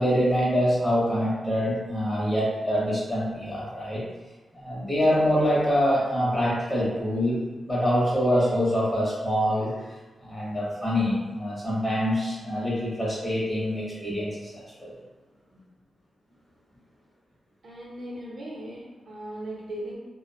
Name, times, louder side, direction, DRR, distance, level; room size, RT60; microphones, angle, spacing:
voice 1, 0.0-4.0 4.5-7.4 7.7-9.7 10.2-14.9, equal, 15° left, -7 dB, 0.8 m, -25 dB
voice 2, 17.6-20.0, right 1 dB, 60° right, -5 dB, 0.7 m, -38 dB
2.5 x 2.1 x 2.6 m, 1.2 s
wide cardioid pair, 145°, 0 cm